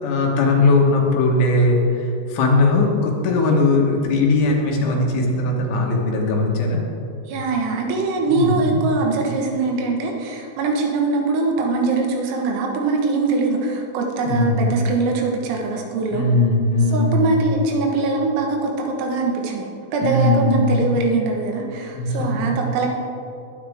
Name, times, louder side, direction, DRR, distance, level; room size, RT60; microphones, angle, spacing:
voice 1, 0.0-6.8 8.3-8.9 14.3-14.7 16.1-17.3 20.0-20.8 22.0-22.7, left 2 dB, 70° left, -1 dB, 3.7 m, -19 dB
voice 2, 7.3-16.3 16.9-22.9, right 3 dB, 85° right, 1 dB, 4.2 m, -22 dB
20.0 x 9.5 x 3.7 m, 2.7 s
omnidirectional pair, 5.9 m